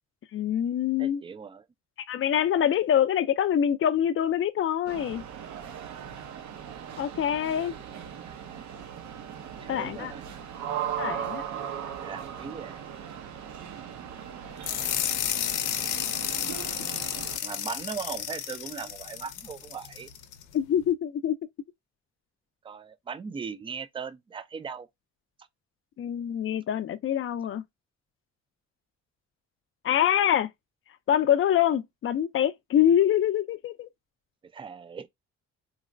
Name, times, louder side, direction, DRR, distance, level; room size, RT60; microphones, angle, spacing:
voice 1, 0.3-1.2 2.1-5.2 7.0-7.7 9.7-10.1 11.0-11.4 20.5-21.4 26.0-27.6 29.8-30.5 31.1-33.9, left 10 dB, 45° left, 0.5 m, -25 dB
voice 2, 1.0-1.6 7.9-8.7 9.6-10.4 12.0-12.9 16.3-16.6 17.3-20.1 22.6-24.9 34.5-35.1, right 6 dB, 20° right, 0.3 m, -39 dB
sound 1, 4.9-17.4, right 9 dB, 70° right, 0.7 m, -38 dB
sound 2, 14.6-20.4, left 11 dB, 90° left, 0.6 m, -32 dB
3.9 x 2.1 x 2.5 m
cardioid pair, 90°, 30 cm